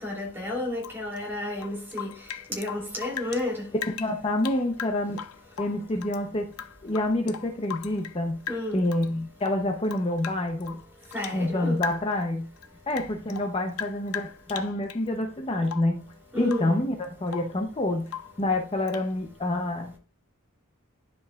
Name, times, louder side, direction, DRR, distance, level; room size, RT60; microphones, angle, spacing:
voice 1, 0.0-2.1 2.6-3.6 8.5-8.8 11.1-11.8 16.3-16.7, left 1 dB, 10° right, 2.8 m, -31 dB
Rain / Drip, 0.8-3.4 3.7-6.2 6.5-8.2 8.5-9.1 9.4-11.4 11.8-12.2 12.6-15.1 15.6-16.0 16.4-16.8 17.0-17.6 18.1-18.4 18.9-19.1, left 9 dB, 70° left, 0.5 m, -39 dB
voice 2, 4.0-5.2 5.6-6.5 6.8-8.4 8.7-10.8 11.3-12.5 12.9-16.0 16.4-18.1 18.4-20.0, left 1 dB, 25° left, 0.7 m, -27 dB
11.5 x 5.3 x 2.3 m
head